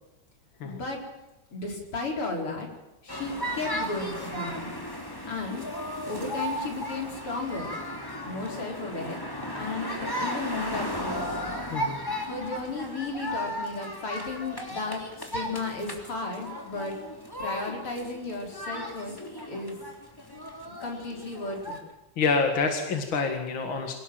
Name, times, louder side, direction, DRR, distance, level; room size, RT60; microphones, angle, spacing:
voice 1, 0.6-1.0 1.5-2.7 3.0-4.7 5.3-5.7 6.1-7.7 8.2-9.3 9.5-11.2 12.3-17.0 17.4-19.1 19.5-19.8 20.8-21.8, left 3 dB, 90° left, 1 dB, 5.4 m, -34 dB
sound 1, 3.1-21.8, equal, 10° left, 3.2 m, -35 dB
voice 2, 11.7-12.0 22.2-24.0, left 4 dB, 65° left, 4 dB, 2.7 m, -27 dB
25.5 x 18.0 x 7.8 m, 0.98 s
omnidirectional pair, 2.4 m